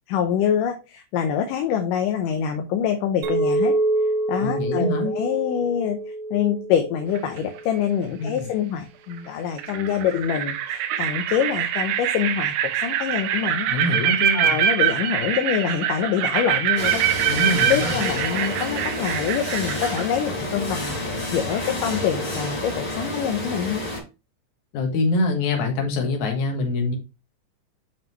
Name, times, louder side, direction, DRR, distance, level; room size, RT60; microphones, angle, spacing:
voice 1, 0.1-3.7 4.0-6.0 6.3-12.5 12.8-13.7 14.3-17.0 17.6-23.8, left 8 dB, 80° left, 2.3 m, -25 dB
Chink clink, 3.2-7.7, right 2 dB, 55° right, 1.5 m, -26 dB
voice 2, 4.4-5.1 8.2-8.5 13.7-14.6 17.2-18.0 24.7-27.0, left 2 dB, 65° left, 2.8 m, -24 dB
sound 1, 7.2-7.6 9.1-9.2 9.6-20.1, right 10 dB, 80° right, 2.3 m, -24 dB
sound 2, 16.8-24.0, left 2 dB, 30° left, 2.9 m, -29 dB
7.2 x 5.4 x 3.1 m
omnidirectional pair, 3.9 m